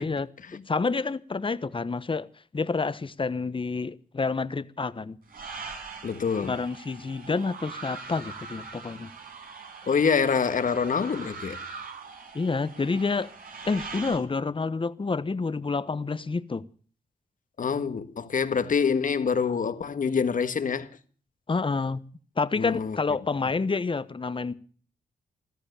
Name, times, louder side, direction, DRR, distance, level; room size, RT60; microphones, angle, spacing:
voice 1, 0.0-2.3 2.5-5.2 6.4-9.1 12.3-13.3 13.6-16.6 21.5-22.0 22.4-24.5, left 4 dB, 35° left, 1.1 m, -28 dB
sound 1, 5.3-14.2, right 4 dB, 65° right, 5.3 m, -42 dB
voice 2, 6.0-6.5 9.9-11.6 17.6-20.9 22.6-23.0, left 6 dB, 60° left, 1.6 m, -26 dB
15.5 x 13.5 x 6.9 m
supercardioid pair, 45°, 16 cm